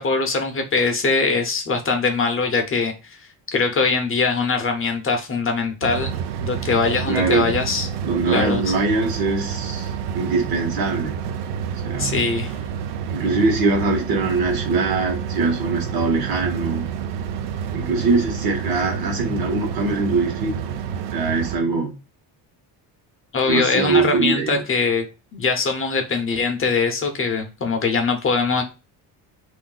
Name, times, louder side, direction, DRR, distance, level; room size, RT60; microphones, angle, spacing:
voice 1, 0.0-3.2 3.5-7.9 8.3-8.6 12.0-12.5 23.3-25.1 25.3-28.6, left 4 dB, 30° left, 0.7 m, -22 dB
sound 1, 5.8-21.6, right 8 dB, 75° right, 0.5 m, -29 dB
voice 2, 7.1-7.5 8.0-11.2 11.8-12.2 13.1-16.9 17.7-20.7 21.1-21.9 23.4-24.6, right 3 dB, 55° right, 1.1 m, -22 dB
2.6 x 2.1 x 3.8 m
cardioid pair, 120°, 43 cm